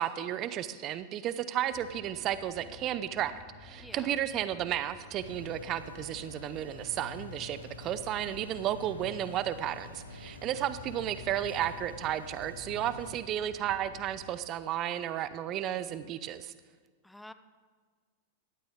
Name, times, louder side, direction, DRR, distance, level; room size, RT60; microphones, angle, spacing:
voice 1, 0.0-3.3 3.6-16.5, right 11 dB, 40° right, 14 dB, 0.6 m, -33 dB
sound 1, 1.7-14.3, left 2 dB, 50° left, 3.4 m, -52 dB
voice 2, 3.8-4.1 10.5-10.6 17.0-17.3, left 1 dB, 5° left, 11 dB, 0.7 m, -49 dB
sound 2, 5.2-13.1, left 4 dB, 90° left, 1.0 m, -47 dB
17.0 x 12.5 x 3.6 m, 1.5 s
figure-of-eight pair, 95°, 0 cm